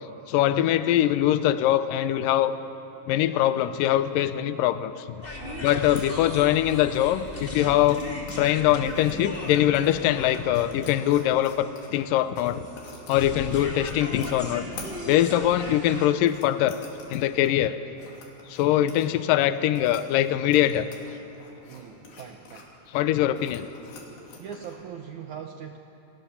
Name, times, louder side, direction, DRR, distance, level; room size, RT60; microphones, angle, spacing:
voice 1, 0.3-2.5 3.1-4.9 5.6-8.0 8.4-12.7 13.1-14.7 15.1-16.8 17.1-17.8 18.5-20.9 22.9-23.7, left 12 dB, 80° left, 12 dB, 2.0 m, -22 dB
sound 1, 5.2-16.1, left 1 dB, 15° left, 2.7 m, -38 dB
voice 2, 5.4-5.9 21.7-22.8 24.4-25.8, right 7 dB, 80° right, 4 dB, 1.7 m, -41 dB
sound 2, 5.8-24.8, left 3 dB, 65° left, 4.7 m, -49 dB
29.0 x 22.0 x 7.1 m, 2.8 s
omnidirectional pair, 4.7 m